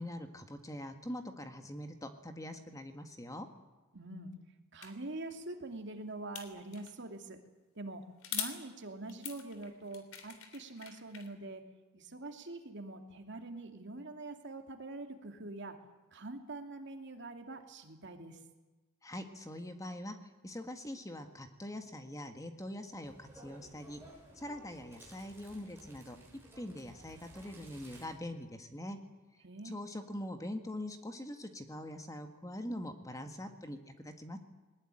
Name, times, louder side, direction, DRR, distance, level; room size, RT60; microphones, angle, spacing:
voice 1, 0.0-3.5 19.0-20.2 20.4-24.0 24.3-26.2 26.6-29.0 29.6-34.4, left 1 dB, 15° left, 7 dB, 1.7 m, -43 dB
voice 2, 3.9-4.3 4.7-7.4 7.7-8.0 8.3-11.6 11.9-15.8 16.1-18.4 29.4-29.8, right 2 dB, 55° right, 5 dB, 2.5 m, -44 dB
sound 1, 4.8-4.9 6.4-7.0 8.2-8.6 9.1-11.3, left 9 dB, 75° left, 3.4 m, -42 dB
sound 2, 23.0-28.1, right 1 dB, 10° right, 6.9 m, -56 dB
20.5 x 20.0 x 10.0 m, 1.2 s
head